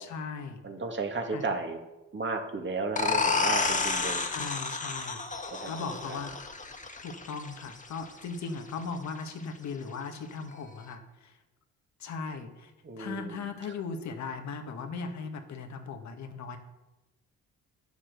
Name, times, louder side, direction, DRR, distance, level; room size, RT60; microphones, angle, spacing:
voice 1, 0.0-0.6 1.3-1.4 4.2-6.4 7.0-11.4 12.0-12.7 13.0-16.6, left 4 dB, 65° left, 6 dB, 1.5 m, -38 dB
voice 2, 0.6-1.8 2.1-4.3 5.5-6.2 12.8-13.5, right 3 dB, 40° right, 4 dB, 2.0 m, -34 dB
sound 1, 3.0-8.4, left 4 dB, 25° left, 1.5 m, -31 dB
9.8 x 7.3 x 6.7 m, 1.0 s
cardioid pair, 90°, 30 cm